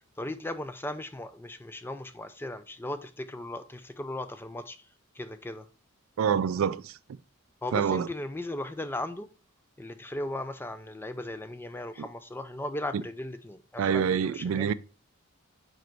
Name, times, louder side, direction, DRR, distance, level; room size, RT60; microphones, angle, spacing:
voice 1, 0.2-4.8 5.1-5.7 7.6-9.3 9.8-14.7, left 1 dB, 10° left, 0.4 m, -37 dB
voice 2, 6.2-7.0 7.7-8.1 13.8-14.7, right 7 dB, 70° right, 0.3 m, -26 dB
5.0 x 4.5 x 4.5 m
head